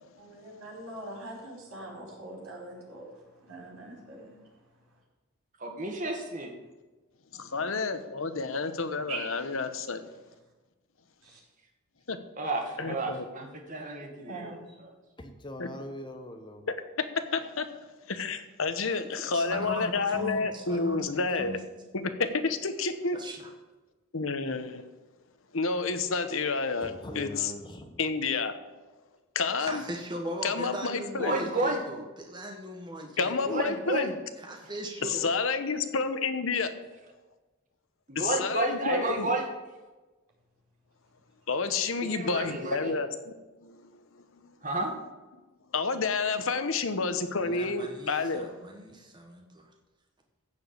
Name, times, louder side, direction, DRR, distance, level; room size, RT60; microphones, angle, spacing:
voice 1, 0.2-3.0 3.5-4.3 9.1-9.2 11.2-11.4 14.3-14.6, right 2 dB, 85° right, 4.7 m, -42 dB
voice 2, 5.6-6.5 12.4-14.9 31.2-31.8 33.4-34.1 38.1-39.4 42.0-42.9 44.6-44.9, right 2 dB, 35° right, 2.0 m, -31 dB
voice 3, 7.3-10.1 12.1-12.2 12.8-13.2 15.6-15.7 17.3-17.7 18.1-21.5 21.9-23.2 24.1-24.9 25.5-27.5 28.0-28.5 29.3-29.8 30.4-31.4 33.2-34.1 35.0-36.7 38.1-39.3 41.5-43.3 43.6-43.9 44.4-44.6 45.7-48.5, left 4 dB, 70° left, 1.0 m, -30 dB
voice 4, 15.2-16.6 26.8-28.0, left 1 dB, 20° left, 1.0 m, -41 dB
voice 5, 19.3-21.0 21.4-21.6 23.1-23.5 29.6-33.6 34.4-35.3 47.4-49.7, right 1 dB, 20° right, 1.3 m, -39 dB
15.0 x 5.1 x 8.4 m
head